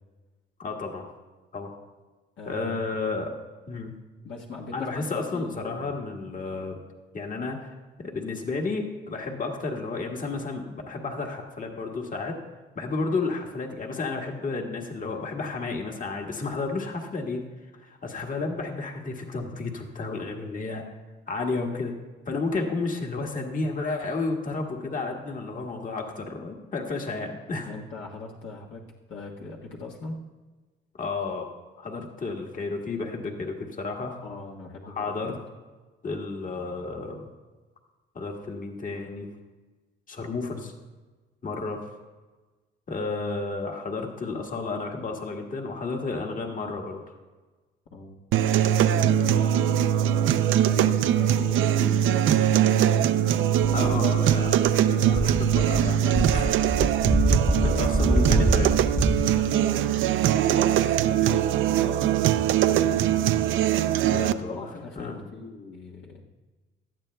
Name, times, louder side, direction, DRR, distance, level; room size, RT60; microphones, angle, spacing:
voice 1, 0.6-1.1 1.5-1.7 2.5-3.3 3.7-3.9 4.7-6.8 7.1-12.4 12.7-17.4 17.8-20.8 21.3-21.9 22.2-27.7 30.9-31.5 31.8-34.1 34.8-35.4 36.0-37.3 38.1-39.3 40.1-40.7 41.4-41.8 42.9-47.0 53.7-56.6 57.6-58.7 59.3-59.5 64.1-64.7 64.9-65.1, left 3 dB, 45° left, 1 dB, 1.7 m, -32 dB
voice 2, 2.4-2.7 4.2-5.9 27.6-28.8 29.1-30.2 34.2-34.9 35.2-35.3 47.9-48.2 48.7-49.8 50.5-52.8 57.5-58.6 59.2-63.4 64.0-66.2, left 3 dB, 70° left, -3 dB, 1.4 m, -40 dB
sound 1, 48.3-64.3, right 10 dB, 80° right, 0.5 m, -22 dB
sound 2, 53.6-54.7 55.1-59.2, equal, 5° left, 0.9 m, -25 dB
17.5 x 12.0 x 2.3 m, 1.3 s
cardioid pair, 90°, 20 cm